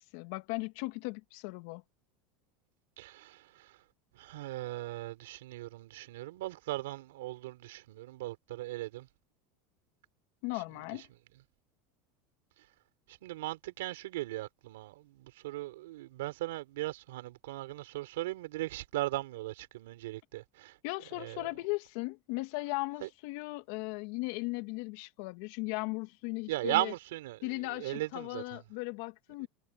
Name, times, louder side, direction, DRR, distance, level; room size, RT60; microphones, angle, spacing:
voice 1, 0.1-1.8 10.4-11.1 20.8-26.9 27.4-29.5, left 24 dB, 70° left, 1.8 m, -37 dB
voice 2, 3.0-3.7 4.2-9.1 13.1-20.7 21.2-21.5 23.0-23.1 26.5-27.4 27.7-28.6 29.4-29.5, right 17 dB, 85° right, 3.7 m, -38 dB
supercardioid pair, 120°, 0 cm